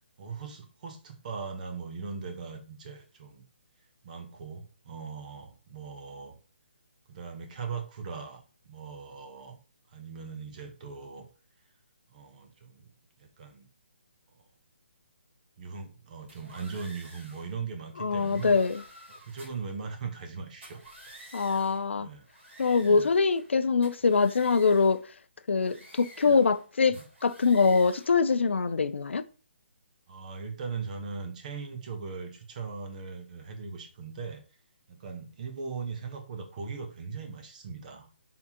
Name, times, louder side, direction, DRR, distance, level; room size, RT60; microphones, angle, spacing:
voice 1, 0.2-3.4 4.0-6.4 7.1-9.6 9.9-11.3 12.1-12.9 13.2-13.7 15.6-18.6 19.1-20.8 22.0-22.3 22.8-23.1 26.2-26.4 26.9-27.0 30.1-34.4 34.9-38.1, right 5 dB, 40° right, 1.0 m, -39 dB
sound 1, 16.3-17.5 18.0-19.7 20.5-21.9 22.2-23.5 23.8-25.0 25.6-26.6 26.9-28.2, right 1 dB, 80° right, 2.1 m, -51 dB
voice 2, 18.0-18.8 21.3-22.1 22.6-25.0 25.5-29.2, left 4 dB, 80° left, 0.4 m, -24 dB
4.3 x 3.7 x 2.9 m
figure-of-eight pair, 150°, 6 cm